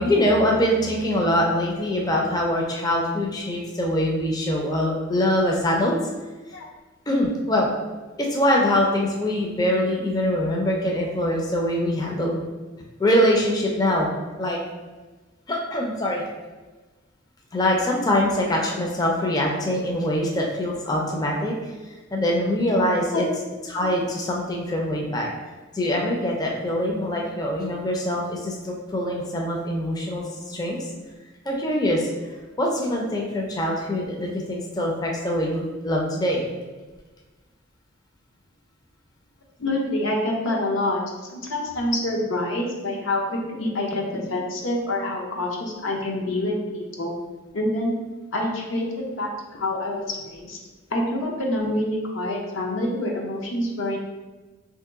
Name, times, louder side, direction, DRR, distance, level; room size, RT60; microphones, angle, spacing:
voice 1, 0.0-5.9 7.1-7.7 8.2-12.4 13.0-14.1 14.4-14.6 15.5-16.2 17.5-23.3 23.7-25.3 25.7-30.9 31.5-36.5, left 1 dB, 20° left, -1 dB, 0.4 m, -23 dB
voice 2, 39.6-47.1 47.5-47.9 48.3-50.6 50.9-54.0, left 1 dB, 80° left, -1 dB, 0.7 m, -26 dB
2.9 x 2.8 x 3.5 m, 1.3 s
head